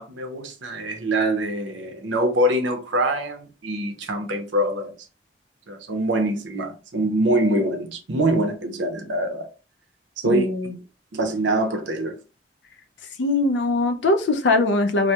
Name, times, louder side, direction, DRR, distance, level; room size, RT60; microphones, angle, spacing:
voice 1, 0.0-4.9 5.7-9.5 10.2-10.5 11.1-12.2, right 1 dB, 80° right, 0.6 m, -24 dB
voice 2, 10.2-10.8 13.2-15.1, left 2 dB, 75° left, 0.4 m, -21 dB
2.2 x 2.1 x 2.7 m
head